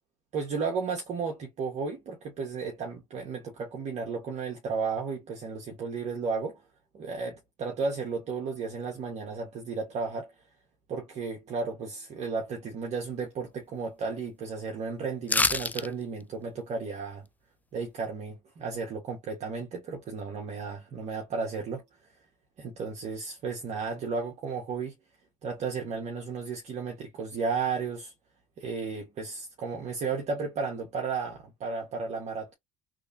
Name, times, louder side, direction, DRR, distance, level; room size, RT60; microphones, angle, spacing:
voice 1, 0.3-6.6 6.9-10.5 10.9-17.3 17.7-22.2 22.6-24.9 25.4-28.1 28.6-32.5, right 4 dB, 50° right, 1.5 m, -34 dB
sound 1, 15.3-15.9 16.2-16.3, left 3 dB, 10° left, 0.4 m, -25 dB
3.4 x 3.4 x 2.8 m
supercardioid pair, 80°, 15 cm